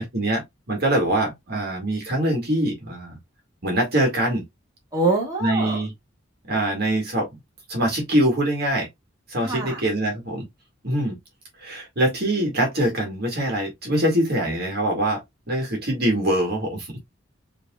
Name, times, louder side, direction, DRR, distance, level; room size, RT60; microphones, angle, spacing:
voice 1, 0.1-3.2 3.6-4.5 5.4-5.9 6.5-7.3 7.7-8.9 9.3-10.5 10.8-11.2 11.6-16.9, right 1 dB, 50° right, 2.2 m, -23 dB
voice 2, 4.9-5.8 9.4-9.8, right 2 dB, 20° right, 2.2 m, -24 dB
6.6 x 3.0 x 2.4 m
head